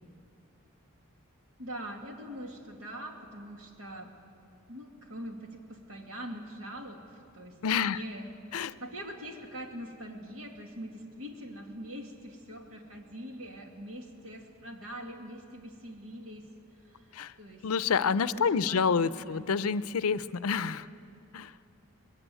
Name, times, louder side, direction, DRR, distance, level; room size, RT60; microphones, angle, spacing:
voice 1, 1.6-4.1 4.7-8.3 8.6-16.5 16.8-17.7 18.3-19.6, equal, 75° right, 3 dB, 2.2 m, -43 dB
voice 2, 7.6-8.0 8.5-8.7 17.1-17.3 17.6-20.9 21.3-21.5, left 6 dB, 90° left, 16 dB, 0.5 m, -28 dB
21.0 x 15.5 x 9.1 m, 2.5 s
head